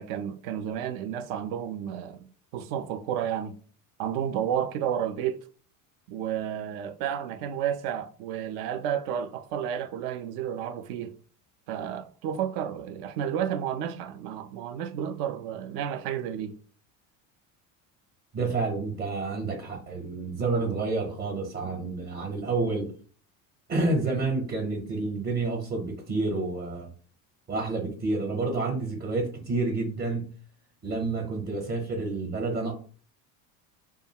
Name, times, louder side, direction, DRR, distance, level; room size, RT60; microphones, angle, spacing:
voice 1, 0.0-2.2 2.5-3.5 4.0-5.4 6.1-11.2 11.7-16.5, right 9 dB, 65° right, 0.5 m, -31 dB
voice 2, 18.3-22.9 23.7-26.9 27.5-30.2 30.8-32.7, right 3 dB, 25° right, 0.6 m, -29 dB
2.5 x 2.3 x 2.7 m
supercardioid pair, 115°, 40 cm